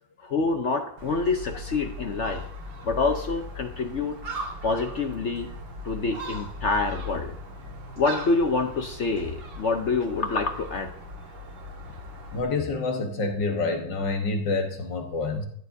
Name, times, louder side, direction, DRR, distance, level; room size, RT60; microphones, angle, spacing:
voice 1, 0.2-2.5 2.8-4.2 4.6-5.5 5.8-7.3 8.0-10.9, left 3 dB, 55° left, 6 dB, 0.8 m, -26 dB
Gull seagull, 1.0-12.4, left 1 dB, 85° right, 2.5 m, -39 dB
voice 2, 12.3-15.5, left 3 dB, 75° left, 4 dB, 1.9 m, -27 dB
14.5 x 11.5 x 2.7 m, 0.64 s
omnidirectional pair, 2.0 m